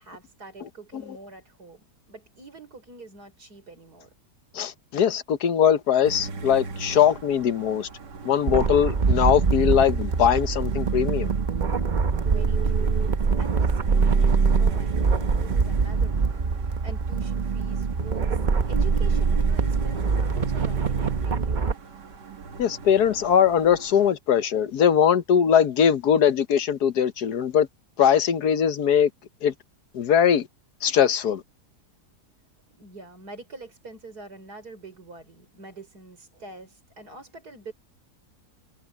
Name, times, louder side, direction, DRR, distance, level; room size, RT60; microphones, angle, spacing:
voice 1, 0.0-4.1 12.2-18.3 18.6-21.7 32.8-37.7, right 3 dB, 70° right, 5.5 m, -45 dB
voice 2, 4.5-7.9 8.2-11.3 22.6-27.7 28.0-29.1 29.4-29.5 29.9-30.5 30.8-31.4, left 8 dB, 70° left, 1.5 m, -21 dB
sound 1, 6.0-24.1, right 4 dB, 90° right, 2.4 m, -39 dB
sound 2, 8.5-21.7, right 5 dB, 35° right, 0.8 m, -23 dB
omnidirectional pair, 1.8 m